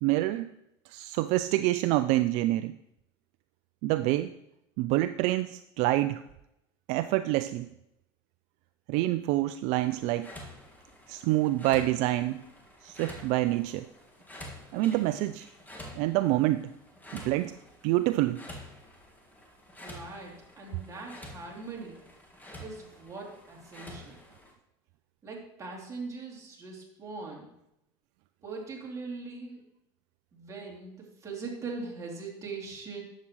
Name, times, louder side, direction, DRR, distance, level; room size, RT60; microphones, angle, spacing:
voice 1, 0.0-0.5 0.9-2.7 3.8-4.3 4.8-6.2 6.9-7.7 8.9-10.3 11.1-12.4 12.8-13.9 14.7-15.5 15.9-16.7 17.1-17.6 17.8-18.4, right 16 dB, 65° right, 12 dB, 0.4 m, -27 dB
sound 1, 9.7-24.5, left 1 dB, 15° left, 1.8 m, -49 dB
voice 2, 19.8-22.0 22.6-24.2 25.2-27.5 28.4-29.6 30.3-33.0, right 4 dB, 25° right, -2 dB, 2.9 m, -41 dB
11.0 x 7.4 x 3.1 m, 0.83 s
supercardioid pair, 105°, 12 cm